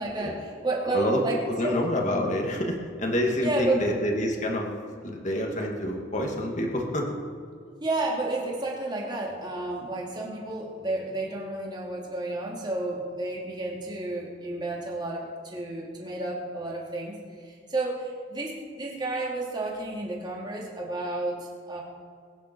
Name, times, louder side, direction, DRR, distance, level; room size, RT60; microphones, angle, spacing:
voice 1, 0.0-1.9 3.4-4.0 7.8-17.2 17.4-21.8, right 2 dB, 20° right, -3 dB, 3.1 m, -31 dB
voice 2, 1.5-4.7 5.0-7.1, left 1 dB, 40° left, 1 dB, 2.3 m, -27 dB
22.0 x 10.5 x 4.7 m, 2.2 s
head